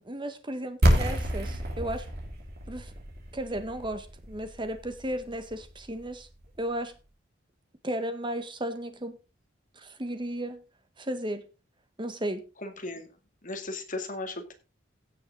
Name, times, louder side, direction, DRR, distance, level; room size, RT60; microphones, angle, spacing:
voice 1, 0.0-2.1 2.7-2.9 3.3-6.3 6.6-6.9 7.8-9.2 9.7-10.6 11.0-11.4 12.0-12.4, right 1 dB, 25° right, 1.6 m, -34 dB
sound 1, 0.8-6.6, equal, 50° right, 3.5 m, -29 dB
voice 2, 12.6-13.1 13.4-14.5, left 2 dB, 40° left, 2.2 m, -36 dB
16.0 x 7.0 x 3.9 m
head